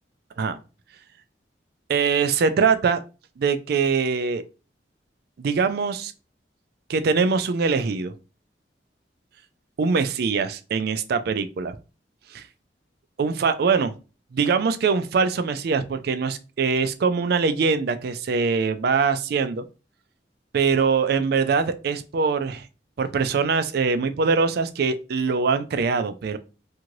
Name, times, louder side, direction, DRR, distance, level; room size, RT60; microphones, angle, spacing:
voice 1, 1.9-3.0 3.4-4.4 5.4-6.1 6.9-8.1 9.8-11.8 12.3-12.4 13.2-13.9 14.3-19.6 20.5-22.7 23.0-26.4, right 5 dB, 60° right, 11 dB, 0.4 m, -23 dB
2.7 x 2.5 x 3.0 m, 0.32 s
head